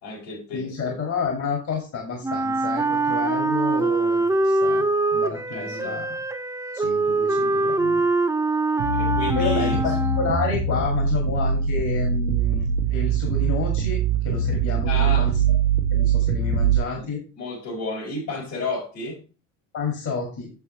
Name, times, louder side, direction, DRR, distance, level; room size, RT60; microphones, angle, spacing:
voice 1, 0.0-0.9 5.5-6.0 8.9-9.8 14.9-15.3 16.9-17.1 17.4-19.2, left 2 dB, 80° left, 4.2 m, -31 dB
voice 2, 0.5-4.9 5.1-6.2 6.7-8.0 9.4-15.6 15.9-17.2 19.7-20.5, left 4 dB, 50° left, 2.3 m, -30 dB
Wind instrument woodwind instrument, 2.2-10.5, right 3 dB, 10° right, 0.5 m, -23 dB
sound 1, 8.8-16.8, right 6 dB, 85° right, 0.8 m, -22 dB
7.0 x 6.6 x 3.1 m
hypercardioid pair, 60°, 38 cm